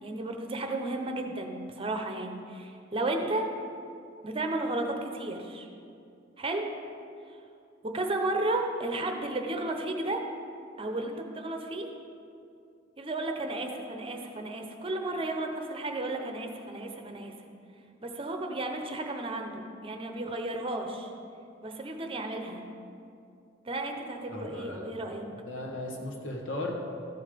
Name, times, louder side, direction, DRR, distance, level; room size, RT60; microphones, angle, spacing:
voice 1, 0.0-3.5 4.2-5.7 6.4-6.6 7.9-10.2 10.8-11.9 13.0-17.3 18.0-21.1 21.6-22.6 23.6-25.2, right 2 dB, 30° right, 4 dB, 0.8 m, -33 dB
voice 2, 24.3-24.9 25.4-26.8, left 2 dB, 80° left, 0 dB, 1.6 m, -36 dB
14.0 x 5.5 x 5.1 m, 2.5 s
head